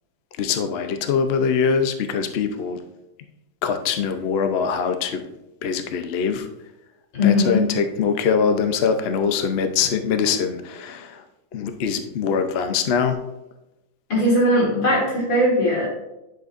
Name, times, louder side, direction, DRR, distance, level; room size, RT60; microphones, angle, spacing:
voice 1, 0.4-2.8 3.6-5.2 5.6-6.5 7.2-11.2 11.5-13.2, left 6 dB, 90° left, 7 dB, 0.5 m, -23 dB
voice 2, 7.1-7.7 14.1-15.9, left 1 dB, 70° left, -4 dB, 3.5 m, -19 dB
10.5 x 6.6 x 2.5 m, 0.94 s
omnidirectional pair, 2.1 m